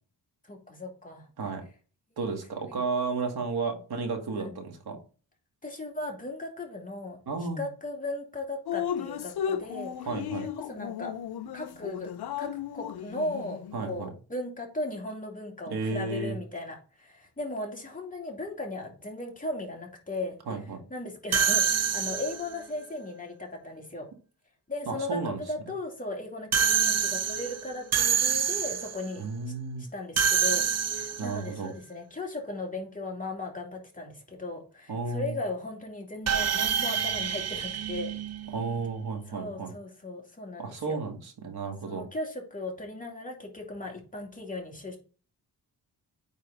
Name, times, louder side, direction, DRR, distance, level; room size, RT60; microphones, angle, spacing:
voice 1, 0.4-1.3 4.4-4.6 5.6-7.2 7.6-11.2 11.5-12.1 12.4-20.4 20.9-24.1 24.7-29.2 29.8-30.6 30.9-38.1 39.3-41.0 41.8-45.0, left 2 dB, 20° left, 0 dB, 2.6 m, -37 dB
voice 2, 2.2-5.0 7.3-7.7 10.1-10.5 13.7-14.1 15.7-16.4 20.5-20.8 24.9-25.4 29.2-29.9 31.2-31.7 34.9-35.4 38.5-39.7 40.6-42.1, right 4 dB, 65° right, 3 dB, 2.2 m, -33 dB
Drip, 8.7-13.9, left 9 dB, 70° left, 0.6 m, -35 dB
sound 1, 21.3-22.6 26.5-29.0 30.2-31.4 36.3-38.8, right 7 dB, 40° right, 0.6 m, -27 dB
9.3 x 4.1 x 4.0 m, 0.37 s
wide cardioid pair, 110°, 40 cm